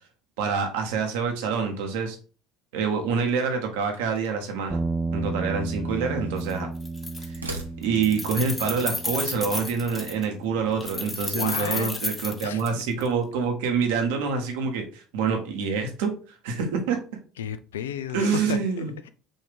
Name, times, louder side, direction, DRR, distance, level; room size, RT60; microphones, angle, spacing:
voice 1, 0.4-2.2 2.7-4.8 5.1-6.7 7.2-7.4 7.8-16.1 16.4-17.0 18.1-18.9, right 5 dB, 70° right, 4 dB, 1.0 m, -26 dB
sound 1, 3.8-4.6 5.5-6.5 7.2-8.2, right 2 dB, 85° right, 0.6 m, -41 dB
sound 2, 4.7-13.0, right 3 dB, 10° right, 0.5 m, -34 dB
Keys jangling, 6.4-6.5 6.8-7.6 7.8-10.2 10.8-13.1, left 2 dB, 20° left, 1.0 m, -32 dB
voice 2, 11.3-11.9 12.4-12.6 17.4-19.1, left 8 dB, 75° left, 13 dB, 0.3 m, -33 dB
5.3 x 2.7 x 3.5 m, 0.36 s
figure-of-eight pair, 65°, 0 cm